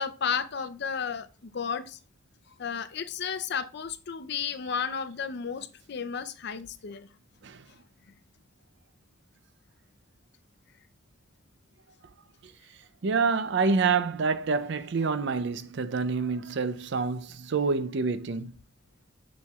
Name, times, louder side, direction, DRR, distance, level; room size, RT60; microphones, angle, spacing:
voice 1, 0.0-2.0 2.6-7.1, left 6 dB, 60° left, 0.6 m, -33 dB
voice 2, 13.0-18.5, right 4 dB, 60° right, 0.5 m, -27 dB
7.1 x 6.4 x 2.3 m
head